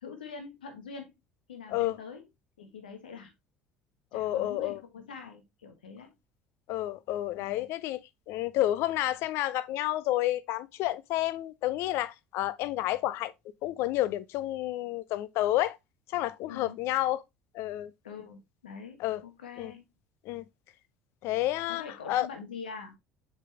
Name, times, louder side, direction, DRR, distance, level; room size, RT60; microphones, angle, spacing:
voice 1, 0.0-1.1 1.5-2.2 2.6-3.3 4.1-6.1 7.4-7.7 16.5-16.8 18.0-19.9 21.7-23.0, left 5 dB, 80° left, 1.3 m, -44 dB
voice 2, 4.1-4.8 6.7-8.0 8.3-13.3 13.6-15.8 16.1-17.2 17.5-17.9 19.0-19.2 19.6-19.7 20.2-20.4 21.2-22.3, left 15 dB, 60° left, 0.6 m, -30 dB
7.4 x 4.1 x 3.2 m
hypercardioid pair, 65°, 5 cm